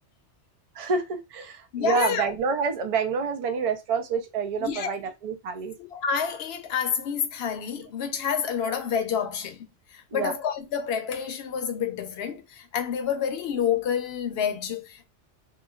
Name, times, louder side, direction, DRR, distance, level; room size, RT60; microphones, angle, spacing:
voice 1, 0.7-5.8 8.6-8.7 10.1-10.3, right 5 dB, 50° right, 0.4 m, -28 dB
voice 2, 1.7-2.2 4.6-4.9 5.8-9.7 9.9-15.1, left 7 dB, 65° left, 0.8 m, -28 dB
3.0 x 2.2 x 2.2 m
omnidirectional pair, 1.2 m